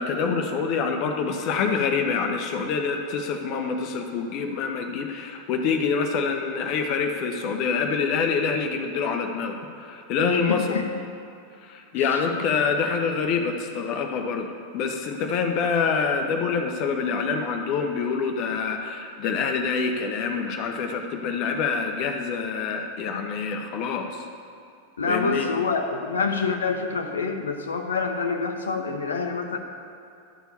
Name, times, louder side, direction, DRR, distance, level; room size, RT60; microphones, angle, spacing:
voice 1, 0.0-10.8 11.6-14.5 14.7-24.2 25.1-25.5, left 5 dB, 40° left, 5 dB, 1.0 m, -26 dB
voice 2, 10.3-11.0 25.0-29.6, left 4 dB, 70° left, 6 dB, 0.9 m, -27 dB
12.5 x 4.5 x 7.0 m, 2.5 s
figure-of-eight pair, 90°, 0 cm